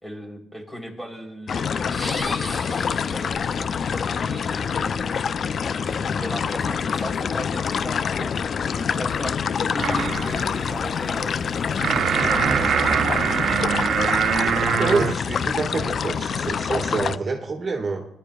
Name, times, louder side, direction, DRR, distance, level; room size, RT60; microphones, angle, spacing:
voice 1, 0.0-5.1 5.8-9.4 9.7-13.6, equal, 10° left, 0 dB, 3.3 m, -37 dB
sound 1, 1.5-17.2, left 6 dB, 50° left, 0.3 m, -26 dB
sound 2, 1.8-3.8, left 1 dB, 25° left, 3.0 m, -35 dB
sound 3, 9.8-15.1, right 8 dB, 60° right, 0.3 m, -23 dB
voice 2, 14.7-18.0, right 4 dB, 40° right, 2 dB, 1.5 m, -27 dB
20.0 x 11.5 x 2.3 m, 0.75 s
cardioid pair, 90°, 0 cm